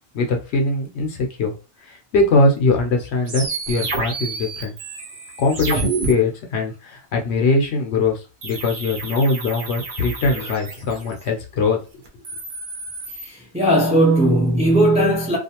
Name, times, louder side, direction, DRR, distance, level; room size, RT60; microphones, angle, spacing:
voice 1, 0.1-1.6 1.9-4.7 5.4-12.0, left 3 dB, 70° left, 0.9 m, -21 dB
sound 1, 3.3-6.1 8.4-11.2 12.1-13.3, right 3 dB, 50° right, 0.8 m, -29 dB
voice 2, 13.2-15.4, right 1 dB, 5° right, 0.6 m, -17 dB
2.4 x 2.4 x 2.8 m
omnidirectional pair, 1.2 m